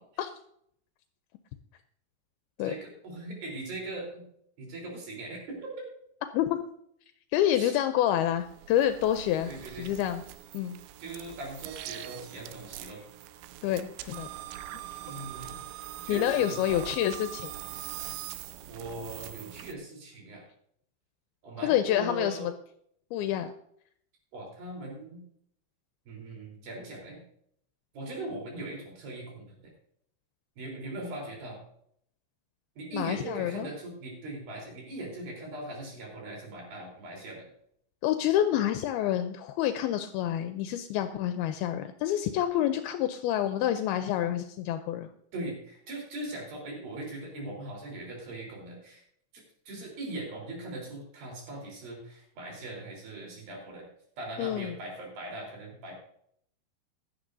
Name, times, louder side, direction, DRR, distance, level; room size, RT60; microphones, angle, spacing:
voice 1, 2.6-4.3 4.6-5.7 7.6-7.7 9.5-9.9 11.0-13.0 15.0-15.6 16.0-16.6 18.7-20.4 21.4-22.5 24.3-25.2 26.1-27.2 27.9-29.5 30.6-31.6 32.8-37.5 45.3-49.0 49.3-53.9 54.2-55.9, right 2 dB, 65° right, -1 dB, 5.5 m, -40 dB
voice 2, 7.3-9.5 9.8-10.2 10.5-10.8 13.6-14.3 16.1-17.5 21.6-22.5 23.1-23.5 32.9-33.7 38.0-45.1 54.4-54.8, left 11 dB, 85° left, 8 dB, 2.4 m, -28 dB
sound 1, 8.1-19.7, right 14 dB, 80° right, 2.3 m, -42 dB
16.0 x 11.5 x 2.7 m, 0.67 s
omnidirectional pair, 4.6 m